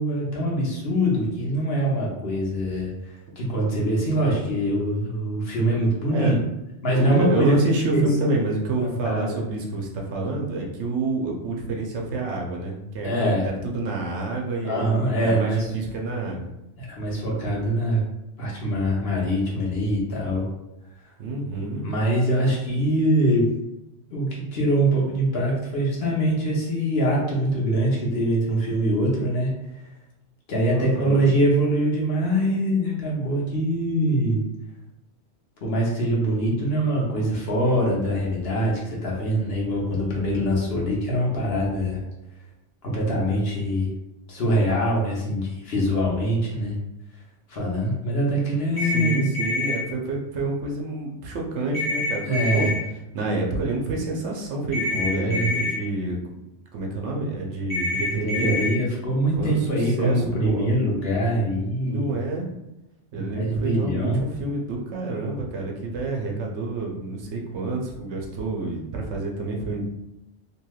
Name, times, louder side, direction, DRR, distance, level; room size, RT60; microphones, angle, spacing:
voice 1, 0.0-6.3 6.8-7.6 7.9-8.0 8.8-9.3 13.0-13.5 14.6-15.7 16.8-18.0 18.4-20.5 21.8-23.5 24.1-29.5 30.5-34.4 35.6-42.0 42.8-43.9 44.3-46.8 47.5-49.3 52.2-52.7 54.9-55.6 58.1-62.1 63.1-64.2, equal, 60° left, -3 dB, 0.9 m, -23 dB
voice 2, 6.9-16.5 21.2-21.9 30.7-31.3 48.8-52.7 53.1-56.2 56.7-58.7 59.4-60.7 61.8-62.5 63.1-69.8, right 2 dB, 70° right, 0 dB, 0.9 m, -28 dB
sound 1, 48.8-49.8 51.7-52.7 54.7-55.7 57.7-58.7, left 3 dB, 20° left, 0.8 m, -26 dB
3.1 x 2.7 x 2.3 m, 0.90 s
omnidirectional pair, 1.3 m